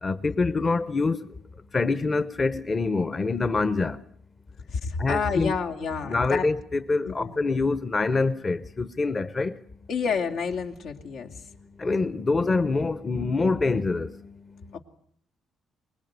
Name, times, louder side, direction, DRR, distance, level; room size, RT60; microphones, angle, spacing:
voice 1, 0.0-1.2 1.7-4.0 5.0-5.5 6.0-9.5 11.8-14.1, left 3 dB, 30° left, 1.0 m, -25 dB
voice 2, 4.7-6.5 7.0-7.4 9.9-11.4 14.7-14.8, left 5 dB, 80° left, 2.8 m, -29 dB
25.5 x 20.5 x 9.6 m
cardioid pair, 90°, 0 cm